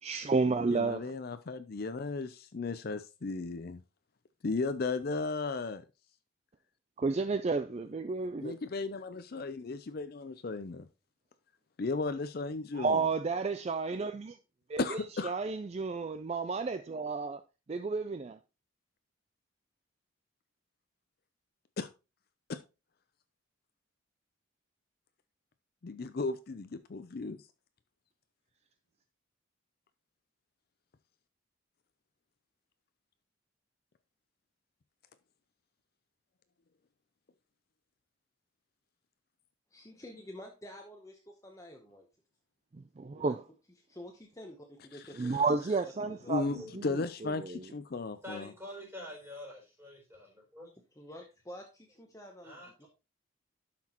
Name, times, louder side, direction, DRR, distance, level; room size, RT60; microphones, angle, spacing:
voice 1, 0.0-1.1 7.0-8.5 12.8-14.4 14.7-15.0 15.2-17.4 17.7-18.4 43.0-43.4 45.2-46.4 46.7-46.8 47.4-47.6, right 4 dB, 30° right, 0.3 m, -31 dB
voice 2, 0.7-3.8 4.4-5.8 8.4-10.9 11.8-13.1 14.8-15.3 21.8-21.9 22.5-22.6 25.8-27.4 46.3-48.5, left 3 dB, 45° left, 0.5 m, -35 dB
voice 3, 39.7-42.1 43.1-43.3 43.9-45.4 45.8-46.5 50.9-52.9, left 1 dB, 15° left, 0.8 m, -49 dB
voice 4, 46.2-46.7 48.2-50.7 52.4-52.9, left 1 dB, 10° right, 4.0 m, -46 dB
11.5 x 5.9 x 3.0 m
head